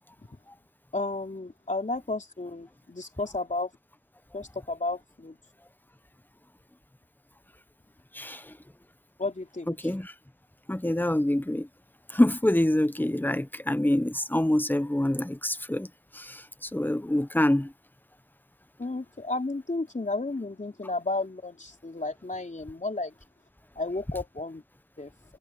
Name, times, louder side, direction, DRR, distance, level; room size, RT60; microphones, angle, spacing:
voice 1, 0.9-3.7 4.3-5.4 9.2-9.8 18.8-23.1 23.8-24.6 25.0-25.1, left 2 dB, 50° left, 3.9 m, -32 dB
voice 2, 8.1-8.5 9.8-10.1 10.7-11.7 12.1-15.9 16.1-17.7, left 1 dB, 10° left, 1.0 m, -26 dB
wide cardioid pair, 45°, 17 cm